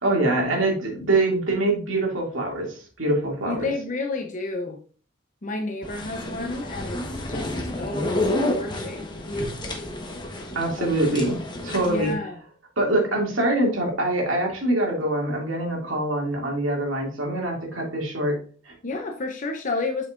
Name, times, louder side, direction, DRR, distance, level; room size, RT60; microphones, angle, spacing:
voice 1, 0.0-3.7 10.5-11.4 11.6-12.1 12.8-18.4 18.6-18.7, right 2 dB, 85° right, -1 dB, 2.4 m, -24 dB
voice 2, 3.4-4.8 5.4-7.0 7.3-9.8 10.8-11.1 11.9-12.4 18.8-20.1, left 3 dB, 40° left, 3 dB, 0.7 m, -31 dB
sound 1, 5.8-12.2, left 1 dB, 25° left, 1.1 m, -30 dB
7.9 x 5.8 x 2.5 m, 0.40 s
head